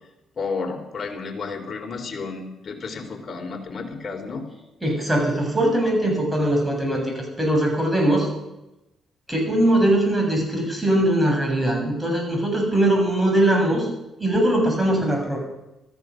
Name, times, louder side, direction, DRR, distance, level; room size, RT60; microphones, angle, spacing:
voice 1, 0.4-4.5, left 4 dB, 45° left, 3 dB, 3.8 m, -32 dB
voice 2, 4.8-8.3 9.3-13.9 14.2-15.4, right 1 dB, 10° right, 1 dB, 7.5 m, -21 dB
14.5 x 14.5 x 6.5 m, 0.95 s
supercardioid pair, 65°, 0 cm